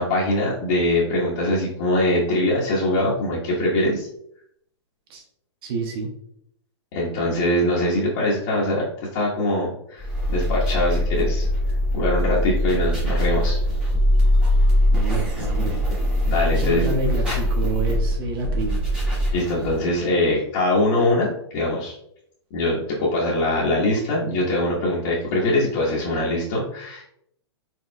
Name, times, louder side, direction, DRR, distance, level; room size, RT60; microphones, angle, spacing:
voice 1, 0.0-4.1 6.9-8.8 9.1-11.5 11.9-13.6 16.3-16.8 19.3-21.9 22.5-27.1, left 1 dB, 45° left, -7 dB, 1.2 m, -22 dB
voice 2, 5.6-6.1 14.9-15.8 16.4-18.8, right 2 dB, 55° right, 2 dB, 1.3 m, -28 dB
sound 1, 10.0-19.9, equal, 5° right, 1.3 m, -22 dB
4.4 x 4.1 x 2.2 m, 0.71 s
hypercardioid pair, 140°, 15 cm